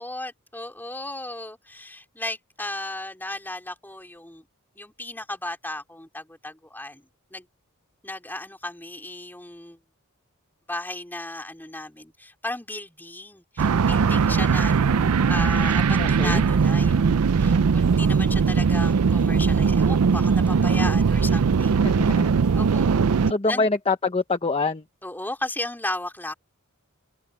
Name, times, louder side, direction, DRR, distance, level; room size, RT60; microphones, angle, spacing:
voice 1, 0.0-4.4 4.7-7.5 8.0-9.8 10.7-21.8 22.5-22.9 23.4-23.7 25.0-26.3, left 2 dB, 10° left, 3.3 m, -35 dB
sound 1, 13.6-23.3, right 5 dB, 85° right, 0.5 m, -20 dB
voice 2, 16.0-16.4 21.7-22.3 23.3-24.8, left 3 dB, 25° left, 0.9 m, -25 dB
open air
head